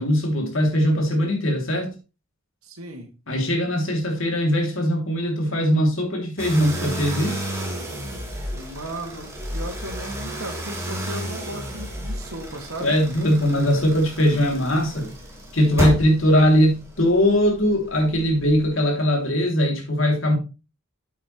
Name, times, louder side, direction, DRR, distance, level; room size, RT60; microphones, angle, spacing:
voice 1, 0.0-1.9 3.3-7.4 12.8-15.1 15.5-20.3, equal, 65° left, 3.0 m, -20 dB
voice 2, 2.6-3.1 8.5-13.0, right 1 dB, 85° right, 2.4 m, -36 dB
sound 1, 6.4-18.8, right 1 dB, 15° right, 2.3 m, -32 dB
8.4 x 8.2 x 3.2 m
head